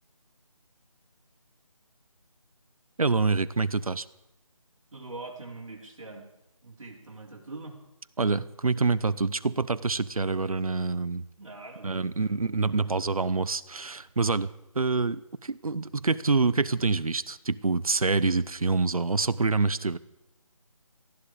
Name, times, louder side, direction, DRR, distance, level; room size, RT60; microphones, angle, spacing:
voice 1, 3.0-4.1 8.2-11.2 11.8-14.5 14.7-20.0, right 3 dB, 85° right, 16 dB, 0.9 m, -26 dB
voice 2, 4.9-6.3 6.6-7.8 11.4-13.1, right 2 dB, 65° right, -3 dB, 4.5 m, -43 dB
19.0 x 13.5 x 5.0 m, 0.92 s
figure-of-eight pair, 165°, 18 cm